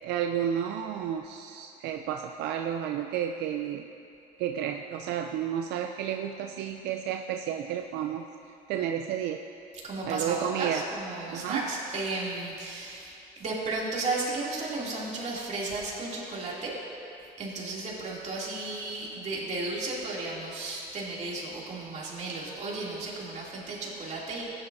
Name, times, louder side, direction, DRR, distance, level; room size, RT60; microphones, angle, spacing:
voice 1, 0.0-3.8 4.4-8.3 8.7-9.4 10.0-10.8 11.3-11.6, right 9 dB, 85° right, 4 dB, 0.5 m, -31 dB
voice 2, 9.8-16.8 17.4-24.5, right 2 dB, 45° right, -5 dB, 2.7 m, -34 dB
15.5 x 9.9 x 2.7 m, 2.6 s
cardioid pair, 110°, 17 cm